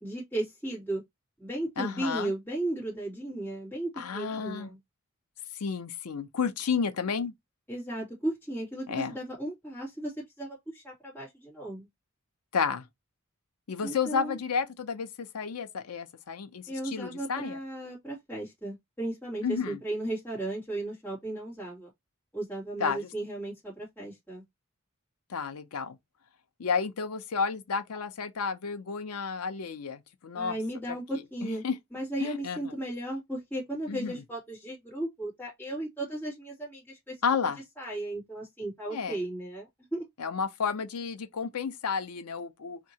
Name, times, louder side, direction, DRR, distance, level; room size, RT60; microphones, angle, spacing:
voice 1, 0.0-1.0 1.4-4.8 7.7-11.9 13.8-14.4 16.7-21.9 22.3-24.4 30.3-31.6 31.9-37.1 37.8-40.0, right 1 dB, 10° left, 2.3 m, -35 dB
voice 2, 1.8-2.3 4.0-4.7 5.6-7.3 8.9-9.1 12.5-12.9 13.7-17.6 19.4-19.8 22.8-23.1 25.3-26.0 26.6-30.6 30.9-31.0 31.4-31.8 32.2-32.7 33.9-34.1 37.2-37.6 38.9-39.2 40.2-42.8, left 5 dB, 90° left, 0.6 m, -31 dB
3.5 x 2.9 x 2.8 m
head